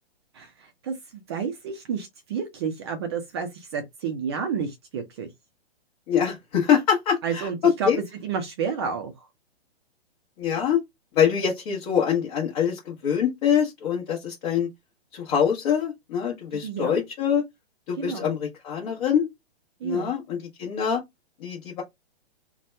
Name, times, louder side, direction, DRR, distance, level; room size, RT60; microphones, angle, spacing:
voice 1, 0.3-5.3 7.2-9.3 16.5-17.1 17.9-18.3 19.8-20.1, right 6 dB, 25° right, 0.4 m, -31 dB
voice 2, 6.1-8.0 10.4-10.8 11.1-14.7 15.1-17.4 17.9-19.3 19.8-21.0 21.4-21.8, left 8 dB, 40° left, 1.0 m, -24 dB
2.8 x 2.2 x 3.1 m
hypercardioid pair, 140°, 31 cm